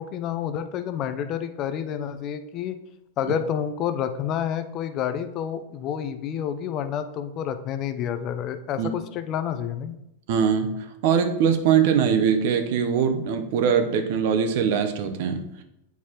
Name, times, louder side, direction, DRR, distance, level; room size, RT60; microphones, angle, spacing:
voice 1, 0.0-2.8 3.2-9.9, left 9 dB, 40° left, 10 dB, 0.5 m, -29 dB
voice 2, 10.3-10.7 11.0-15.4, right 7 dB, 60° right, 7 dB, 0.7 m, -22 dB
8.2 x 4.6 x 2.9 m, 0.85 s
hypercardioid pair, 110°, 0 cm